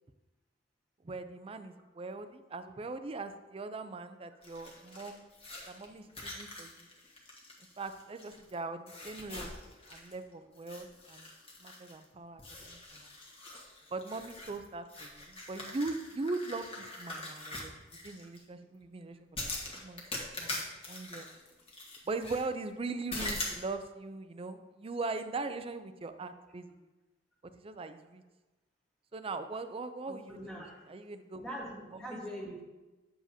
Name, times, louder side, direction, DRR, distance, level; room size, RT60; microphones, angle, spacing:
voice 1, 1.0-5.2 5.7-6.9 7.8-9.5 9.9-11.3 11.6-13.1 13.9-19.5 19.7-20.0 20.4-21.3 22.1-26.7 27.5-28.2 29.1-31.5 32.0-32.2, right 3 dB, 30° right, 10 dB, 0.4 m, -40 dB
sound 1, 4.4-8.5 8.9-10.2 10.6-12.1 12.4-18.4 19.4-22.5 23.1-23.6, left 2 dB, 30° left, 1.4 m, -43 dB
voice 2, 30.1-30.8 31.4-32.6, equal, 5° left, -3 dB, 1.2 m, -42 dB
8.7 x 7.2 x 2.8 m, 1.1 s
head